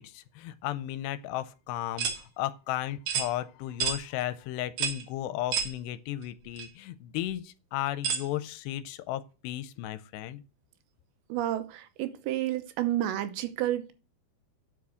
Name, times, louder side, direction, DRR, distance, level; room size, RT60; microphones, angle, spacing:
voice 1, 0.0-10.4, left 13 dB, 80° left, 2.6 m, -35 dB
sound 1, 2.0-2.2 3.1-3.3 3.8-4.0 4.8-5.0 5.5-5.7 6.6-6.7 8.0-8.3, right 6 dB, 55° right, 2.0 m, -29 dB
voice 2, 11.3-13.9, right 13 dB, 80° right, 3.1 m, -30 dB
9.6 x 6.0 x 6.3 m
omnidirectional pair, 5.0 m